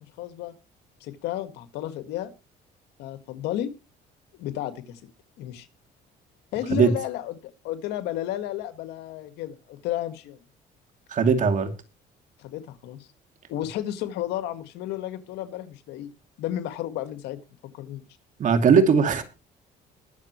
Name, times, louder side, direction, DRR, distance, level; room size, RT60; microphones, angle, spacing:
voice 1, 0.2-0.6 1.0-2.3 3.0-3.7 4.3-5.0 5.4-5.7 6.5-10.4 12.4-13.1 13.5-16.1 16.4-18.0, left 12 dB, 90° left, 10 dB, 1.8 m, -33 dB
voice 2, 11.1-11.7 18.4-19.2, right 6 dB, 50° right, 7 dB, 2.6 m, -19 dB
21.5 x 7.4 x 3.1 m, 0.30 s
cardioid pair, 110°, 17 cm